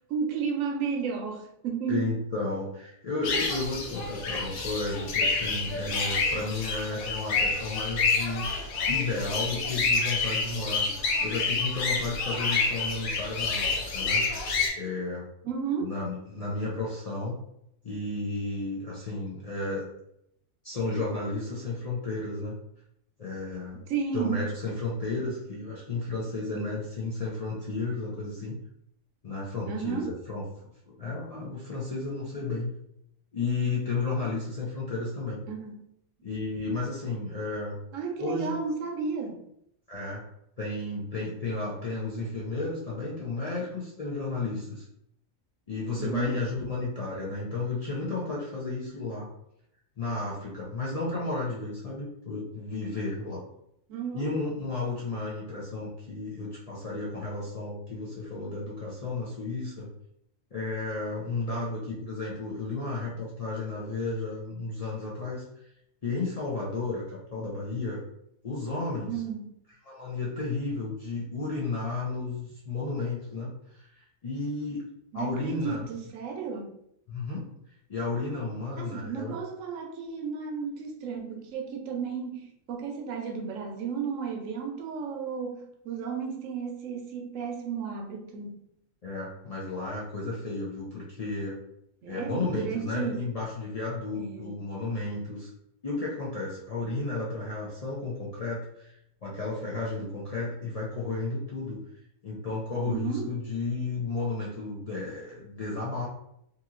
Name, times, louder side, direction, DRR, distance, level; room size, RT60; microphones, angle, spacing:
voice 1, 0.1-2.1 15.4-15.9 23.9-24.5 26.5-26.7 29.7-30.1 35.5-35.8 37.9-39.4 46.0-46.4 53.9-54.3 69.1-69.5 75.1-76.7 78.8-88.6 92.0-93.2 94.1-94.5 102.9-103.3, right 6 dB, 75° right, 2 dB, 0.9 m, -33 dB
voice 2, 1.9-8.5 8.9-14.3 14.8-15.3 15.8-17.4 17.8-19.9 20.6-22.6 23.2-23.8 24.1-28.6 29.2-30.4 31.0-32.7 33.3-35.4 36.2-37.8 38.2-38.6 39.9-40.2 40.6-44.8 45.7-49.3 50.0-53.4 54.1-59.9 60.5-65.5 66.0-68.0 68.4-69.2 69.9-74.9 75.1-75.9 77.1-77.5 77.9-79.4 89.0-91.6 92.0-95.5 95.8-98.9 99.2-101.8 102.2-106.1, left 3 dB, 60° left, -6 dB, 0.4 m, -33 dB
sound 1, 3.2-14.7, left 4 dB, 85° left, 1.1 m, -28 dB
2.8 x 2.7 x 2.4 m, 0.77 s
omnidirectional pair, 1.4 m